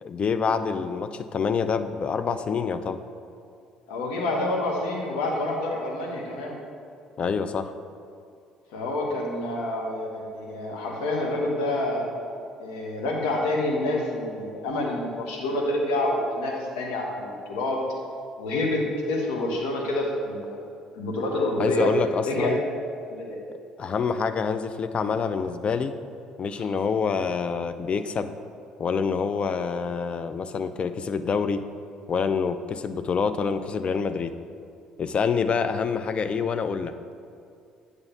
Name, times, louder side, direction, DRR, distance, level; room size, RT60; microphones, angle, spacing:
voice 1, 0.0-3.0 7.2-7.7 21.6-22.6 23.8-25.9 26.4-28.3 28.8-31.6 32.1-34.3 35.0-36.9, left 5 dB, 35° left, 10 dB, 0.4 m, -26 dB
voice 2, 3.9-6.6 8.7-12.1 12.6-17.8 18.4-20.6 20.9-21.9 22.2-22.6 23.1-23.4 26.5-26.7, left 1 dB, 65° left, -1 dB, 1.2 m, -28 dB
8.7 x 3.4 x 5.7 m, 2.4 s
figure-of-eight pair, 50°, 3 cm